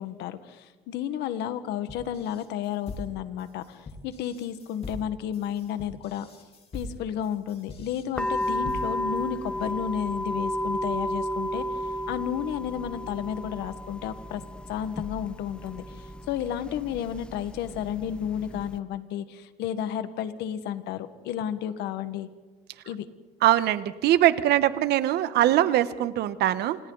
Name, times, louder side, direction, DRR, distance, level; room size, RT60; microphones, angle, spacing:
voice 1, 0.0-6.3 6.7-14.4 14.7-22.3 22.8-23.1, left 9 dB, 85° left, 11 dB, 1.7 m, -32 dB
sound 1, 1.9-9.2, left 2 dB, 35° left, 4.1 m, -42 dB
sound 2, 8.2-18.8, equal, 5° left, 1.1 m, -33 dB
voice 2, 23.4-26.8, right 13 dB, 80° right, 13 dB, 1.3 m, -22 dB
29.0 x 27.5 x 4.1 m, 1.3 s
cardioid pair, 110°, 17 cm